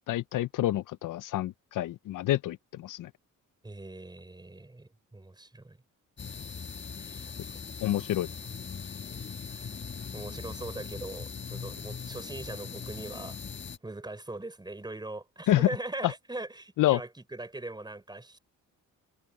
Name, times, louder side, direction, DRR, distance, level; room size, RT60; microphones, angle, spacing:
voice 1, 0.1-3.1 7.8-8.3 15.5-15.7 16.8-17.0, left 14 dB, 75° left, 0.6 m, -27 dB
voice 2, 3.6-5.8 6.9-7.6 7.9-8.0 9.5-9.7 10.1-13.4 13.8-18.4, right 2 dB, 15° right, 4.6 m, -41 dB
sound 1, 6.2-13.8, left 6 dB, 35° left, 1.7 m, -40 dB
cardioid pair, 105°, 32 cm